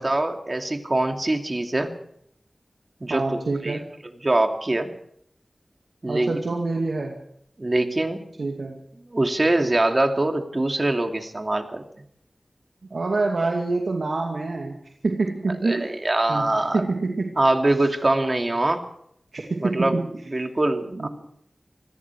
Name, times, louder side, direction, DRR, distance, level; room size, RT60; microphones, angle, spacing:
voice 1, 0.0-1.9 3.0-3.8 4.2-4.9 6.0-6.3 7.6-8.2 9.1-11.8 15.6-16.8 17.4-18.8 19.6-20.0 20.3-21.1, right 2 dB, 40° right, 5 dB, 2.7 m, -23 dB
voice 2, 3.1-3.9 6.1-7.2 8.4-8.8 12.9-14.8 15.0-15.9 16.3-16.5 16.7-17.3 19.3-20.3 20.9-21.1, right 3 dB, 90° right, 1 dB, 2.5 m, -26 dB
27.0 x 20.5 x 4.8 m, 0.69 s
wide cardioid pair, 60°, 0 cm